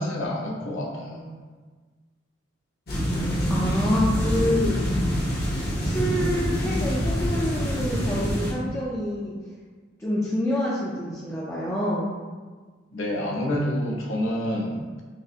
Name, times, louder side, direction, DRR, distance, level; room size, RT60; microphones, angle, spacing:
voice 1, 0.0-1.3 12.9-15.0, left 1 dB, 85° left, -2 dB, 0.8 m, -28 dB
sound 1, 2.9-8.5, equal, 50° left, 0.8 m, -25 dB
voice 2, 3.5-4.7 5.8-9.3 10.0-12.1, left 1 dB, 15° left, -7 dB, 0.4 m, -27 dB
6.2 x 2.1 x 2.7 m, 1.4 s
head